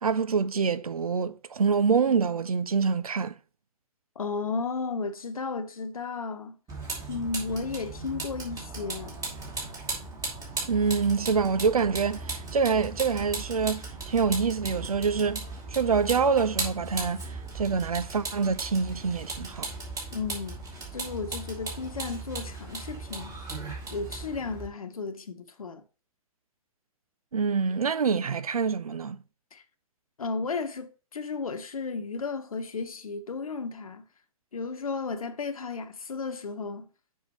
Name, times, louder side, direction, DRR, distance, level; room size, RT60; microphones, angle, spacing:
voice 1, 0.0-3.4 10.7-15.4 15.7-19.7 27.3-29.2, right 5 dB, 85° right, 0.6 m, -26 dB
voice 2, 4.2-6.6 7.1-9.2 20.1-20.6 20.9-23.4 23.9-25.8 29.5-29.6 30.2-34.0 34.5-36.9, left 4 dB, 75° left, 1.0 m, -34 dB
Vehicle, 6.7-24.7, right 3 dB, 20° right, 2.8 m, -37 dB
7.1 x 5.5 x 3.1 m
figure-of-eight pair, 115°, 18 cm